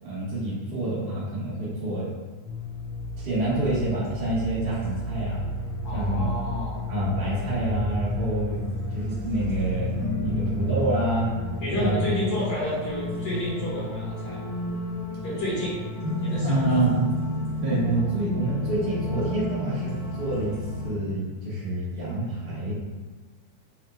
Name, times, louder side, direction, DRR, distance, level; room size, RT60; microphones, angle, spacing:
voice 1, 0.0-2.1 3.2-5.4 5.9-6.3 6.9-8.6 8.9-11.3 11.8-12.0 16.4-17.1 17.6-22.7, right 2 dB, 85° right, -9 dB, 0.5 m, -27 dB
sound 1, 2.4-20.9, left 1 dB, 60° right, 1.7 m, -31 dB
voice 2, 5.8-6.8 11.6-14.4 15.2-15.7 16.2-16.9, equal, 60° left, -9 dB, 2.6 m, -30 dB
6.8 x 2.5 x 2.2 m, 1.3 s
omnidirectional pair, 3.4 m